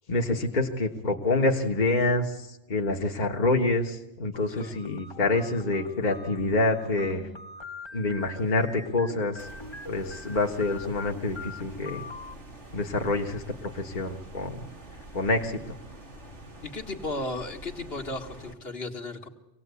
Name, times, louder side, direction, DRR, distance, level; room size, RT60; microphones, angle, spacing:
voice 1, 0.1-7.3 7.9-9.5 9.9-12.0 12.7-14.6 15.1-15.6, left 2 dB, 40° left, 1 dB, 1.6 m, -27 dB
sound 1, 4.3-12.3, left 3 dB, 25° left, 1.2 m, -42 dB
sound 2, 9.4-18.5, right 1 dB, 85° right, 3.1 m, -46 dB
voice 2, 16.6-19.3, left 2 dB, 60° left, 4 dB, 2.0 m, -35 dB
25.5 x 18.5 x 8.3 m, 1.0 s
omnidirectional pair, 1.2 m